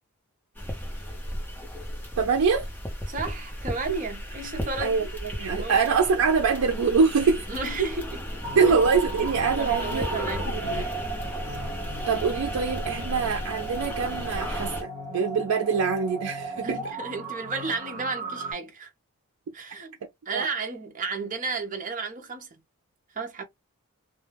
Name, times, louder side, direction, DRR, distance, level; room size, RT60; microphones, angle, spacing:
sound 1, 0.5-14.8, equal, 10° left, 0.7 m, -35 dB
voice 1, 2.2-2.7 4.8-7.5 8.5-10.2 10.5-10.9 12.1-16.8 20.3-20.5, right 5 dB, 80° right, 0.4 m, -24 dB
voice 2, 3.1-5.1 5.6-5.8 7.5-8.3 9.6-10.9 16.6-18.9 19.5-19.9 20.3-22.6 23.1-23.4, right 4 dB, 35° right, 0.6 m, -33 dB
sound 2, 8.4-18.5, right 2 dB, 15° right, 1.2 m, -36 dB
2.3 x 2.2 x 3.2 m
head